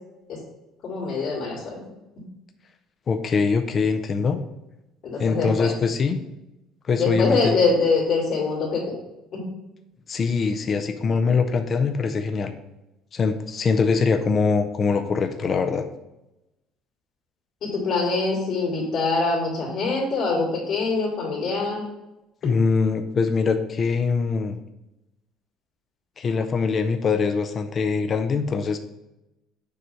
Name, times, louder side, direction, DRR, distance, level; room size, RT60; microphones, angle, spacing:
voice 1, 0.8-1.8 5.0-5.7 7.0-8.9 9.3-9.5 17.6-21.8, left 3 dB, 50° left, -5 dB, 2.3 m, -24 dB
voice 2, 3.1-4.4 5.2-6.2 6.9-7.6 10.1-12.5 13.1-15.8 22.4-24.6 26.2-28.8, left 5 dB, 30° left, 6 dB, 0.5 m, -23 dB
6.8 x 3.2 x 5.5 m, 0.95 s
cardioid pair, 155°, 0 cm